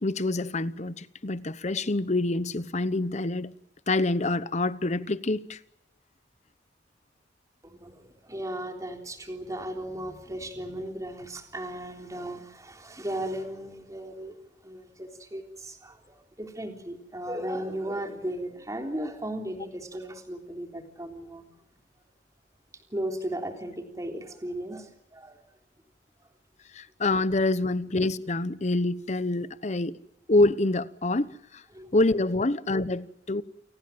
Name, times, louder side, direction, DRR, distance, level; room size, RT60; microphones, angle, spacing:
voice 1, 0.0-3.5 3.9-5.6 26.7-30.0 30.3-31.6 31.9-33.4, left 2 dB, 40° left, 0.9 m, -26 dB
voice 2, 7.6-14.4 14.6-21.5 22.7-25.4 31.7-32.2, right 1 dB, 20° right, 3.6 m, -36 dB
29.0 x 19.0 x 7.6 m
head